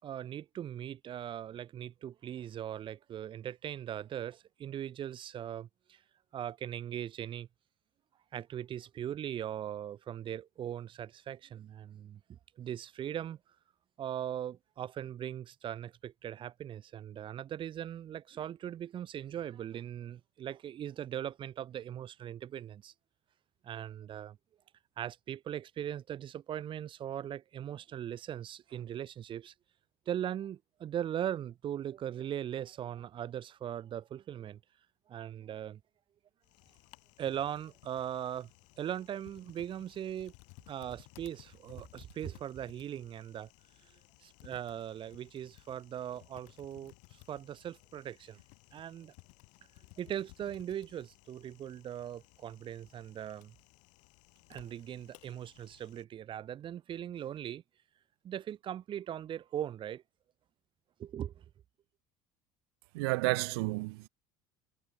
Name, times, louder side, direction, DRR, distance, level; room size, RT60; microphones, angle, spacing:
voice 1, 0.0-6.0 6.3-7.5 8.3-13.4 14.0-22.9 23.6-24.4 25.0-29.5 30.1-34.6 35.1-35.8 37.2-38.5 38.8-40.3 40.7-43.5 43.8-43.9 44.2-48.4 48.7-49.1 50.0-53.6 54.5-57.6 58.2-60.0 61.0-61.4, right 10 dB, 40° right, 4.5 m, -40 dB
Typing, 36.4-56.0, left 29 dB, 75° left, 5.2 m, -59 dB
voice 2, 62.9-64.1, right 26 dB, 90° right, 0.9 m, -31 dB
cardioid pair, 125°, 13 cm